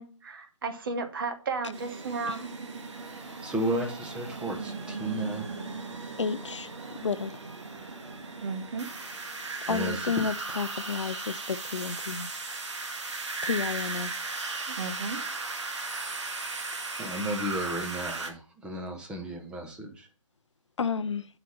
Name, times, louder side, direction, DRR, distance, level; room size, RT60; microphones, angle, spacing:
voice 1, 0.0-2.4 8.4-8.9 14.7-15.2, right 4 dB, 45° right, 1.2 m, -34 dB
sound 1, 1.7-18.3, right 3 dB, 60° right, 1.6 m, -37 dB
voice 2, 2.9-5.5 9.7-10.1 17.0-20.1, right 1 dB, 5° right, 1.0 m, -34 dB
voice 3, 6.2-7.4 9.7-12.3 13.4-14.1 20.8-21.3, left 5 dB, 65° left, 0.6 m, -31 dB
7.5 x 5.1 x 5.3 m
figure-of-eight pair, 145°, 17 cm